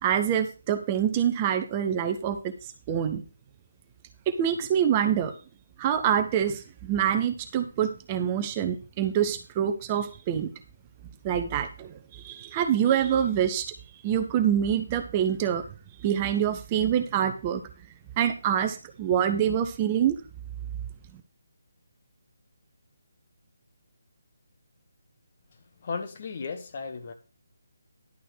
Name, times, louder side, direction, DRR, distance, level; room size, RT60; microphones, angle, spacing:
voice 1, 0.0-2.5 2.9-3.2 4.3-5.3 5.8-10.5 11.2-13.7 14.0-15.6 16.0-17.6 18.2-20.2, right 9 dB, 20° right, 0.8 m, -26 dB
voice 2, 25.8-27.1, left 5 dB, 40° left, 1.4 m, -35 dB
11.0 x 4.4 x 6.3 m
figure-of-eight pair, 145°, 0 cm